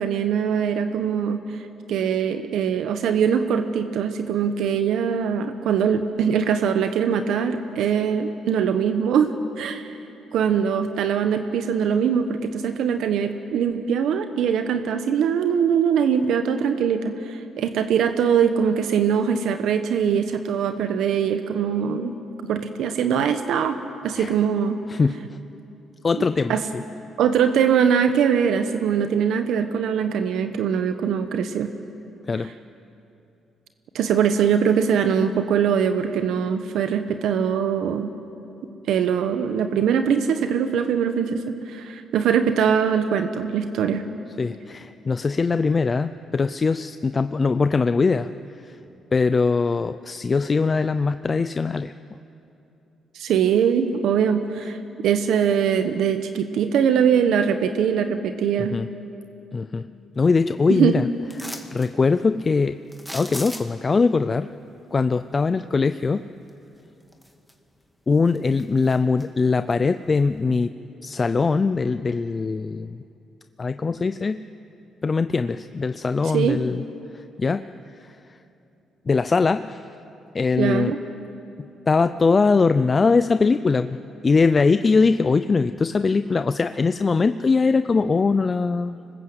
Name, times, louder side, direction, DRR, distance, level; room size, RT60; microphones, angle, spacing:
voice 1, 0.0-1.6 1.9-10.0 10.3-22.1 22.4-23.8 24.0-24.8 26.2-26.6 27.2-31.7 33.9-38.1 38.9-44.0 53.1-58.8 60.7-61.0 76.3-76.6 80.6-81.0, right 7 dB, 80° right, 8 dB, 1.1 m, -22 dB
voice 2, 26.0-26.8 32.3-32.5 44.4-48.3 48.6-48.8 49.1-51.9 58.6-58.9 59.5-59.9 60.2-61.1 61.4-62.8 63.1-64.5 64.9-66.2 68.1-70.7 71.0-73.0 73.6-74.4 75.0-76.8 77.1-77.6 79.1-79.8 80.3-80.9 81.9-84.0 84.2-89.0, left 4 dB, 35° left, 11 dB, 0.5 m, -21 dB
sound 1, 61.3-61.9 62.9-63.9 66.5-66.6 67.1-67.8 68.1-69.3 69.7-69.8, equal, ahead, 2.1 m, -37 dB
24.5 x 20.0 x 8.0 m, 2.8 s
cardioid pair, 90°, 0 cm